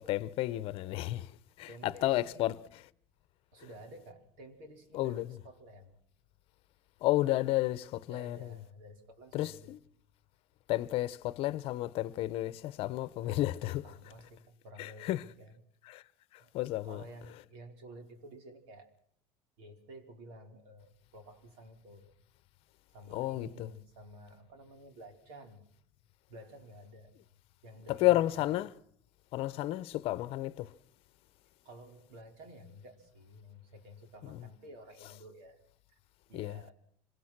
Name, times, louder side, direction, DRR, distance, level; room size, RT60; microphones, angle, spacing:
voice 1, 0.0-2.6 4.9-5.3 7.0-8.5 9.3-9.8 10.7-13.8 14.8-15.2 15.9-16.0 16.3-17.0 23.1-23.7 27.9-28.7 29.3-30.7 34.2-34.4 36.3-36.5, left 16 dB, 50° left, 0.9 m, -32 dB
voice 2, 1.7-2.5 3.5-6.0 8.1-9.7 13.8-15.6 16.4-16.5 16.8-18.9 19.6-22.1 22.9-25.7 26.3-27.1 27.6-28.5 31.6-35.6 35.9-36.0 36.3-36.7, right 1 dB, 85° right, 4.7 m, -52 dB
25.0 x 24.5 x 6.1 m
cardioid pair, 155°, 12 cm